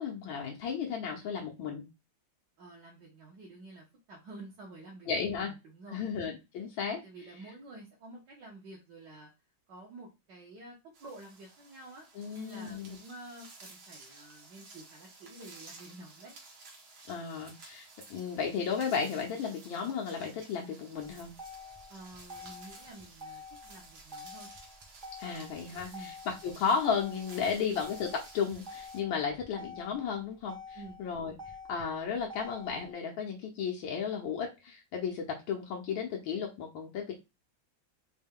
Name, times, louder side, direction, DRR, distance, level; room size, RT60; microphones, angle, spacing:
voice 1, 0.0-1.9 5.1-5.5 5.9-7.0 12.1-13.0 17.1-21.3 25.2-31.3 31.7-37.1, left 6 dB, 80° left, 0 dB, 1.5 m, -34 dB
voice 2, 2.6-6.0 6.6-6.7 7.0-9.3 9.7-16.3 21.9-24.5 25.9-26.1 27.4-27.5 30.7-31.0, right 2 dB, 65° right, -3 dB, 1.6 m, -50 dB
sound 1, 10.9-29.0, right 3 dB, 85° right, 1.9 m, -54 dB
Motor vehicle (road), 21.0-32.9, left 3 dB, 5° left, 0.5 m, -48 dB
4.4 x 2.2 x 3.6 m, 0.24 s
omnidirectional pair, 2.1 m